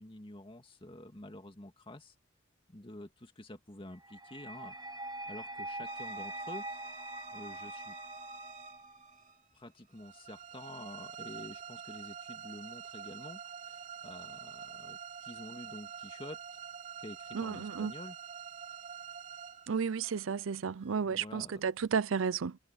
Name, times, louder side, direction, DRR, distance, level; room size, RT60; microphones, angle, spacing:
voice 1, 0.0-2.1 2.7-4.8 5.3-6.7 7.3-8.0 9.5-16.6 17.0-18.2 21.0-21.7, left 1 dB, 25° left, 2.3 m, -49 dB
sound 1, 4.0-9.1, right 1 dB, 20° right, 1.0 m, -43 dB
sound 2, 5.8-20.9, right 7 dB, 40° right, 3.2 m, -47 dB
voice 2, 17.3-17.9 19.7-22.6, right 6 dB, 80° right, 0.5 m, -32 dB
head